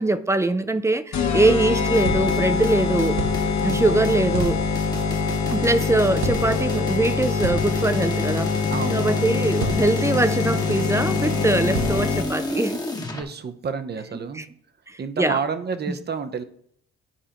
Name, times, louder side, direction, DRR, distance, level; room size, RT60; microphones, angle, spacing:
voice 1, 0.0-3.2 3.6-4.6 5.5-8.6 8.9-12.8 14.1-14.4 14.9-15.4 15.9-16.0, right 2 dB, 10° right, 12 dB, 0.4 m, -22 dB
sound 1, 1.1-12.5, left 5 dB, 65° left, 1.2 m, -24 dB
sound 2, 1.9-13.2, left 2 dB, 15° left, 1.1 m, -32 dB
sound 3, 2.0-2.6 3.2-3.7 4.3-4.9 6.1-6.8 7.4-8.3 9.6-10.2 11.7-12.4, right 3 dB, 75° right, 1.3 m, -31 dB
voice 2, 3.6-4.2 8.7-9.3 11.7-11.8 13.1-14.5 15.0-16.4, right 5 dB, 35° right, 10 dB, 0.7 m, -30 dB
11.0 x 4.9 x 2.9 m, 0.66 s
cardioid pair, 90°, 30 cm